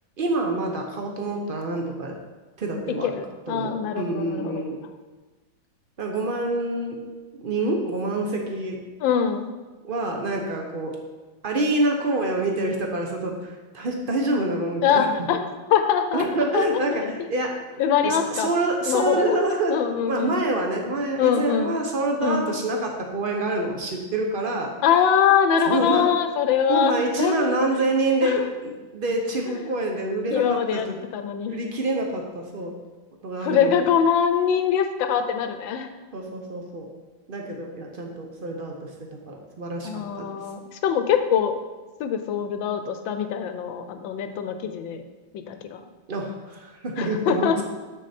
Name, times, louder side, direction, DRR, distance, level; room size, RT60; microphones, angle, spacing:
voice 1, 0.2-2.2 2.6-3.2 3.5-4.8 6.0-7.0 7.3-8.8 9.8-11.0 11.4-15.1 16.1-17.5 18.0-24.7 25.6-26.0 26.7-31.0 31.5-32.8 33.2-33.7 36.1-36.9 37.3-38.9 39.3-40.3 46.1-47.6, right 2 dB, 70° right, 2 dB, 0.5 m, -26 dB
voice 2, 3.0-4.7 9.0-9.5 14.8-16.3 16.5-16.6 16.9-17.1 17.8-18.5 18.9-19.4 19.7-20.4 21.2-21.8 22.2-22.5 24.8-26.9 27.2-27.6 28.2-28.4 30.3-30.9 31.1-31.6 33.4-35.9 39.8-41.6 42.0-45.0 45.5-45.8 47.0-47.6, left 8 dB, 80° left, 8 dB, 1.4 m, -23 dB
7.2 x 6.3 x 4.2 m, 1.3 s
omnidirectional pair, 2.1 m